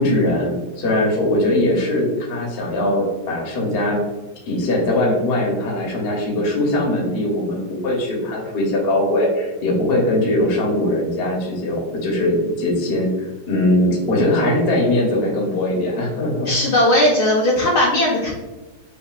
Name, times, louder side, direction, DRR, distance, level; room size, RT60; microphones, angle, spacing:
voice 1, 0.0-4.0 4.5-13.1 13.5-16.5, left 1 dB, 50° left, -1 dB, 0.7 m, -20 dB
voice 2, 16.5-18.3, left 1 dB, 70° left, -3 dB, 1.0 m, -17 dB
5.4 x 2.4 x 2.4 m, 1.2 s
omnidirectional pair, 2.2 m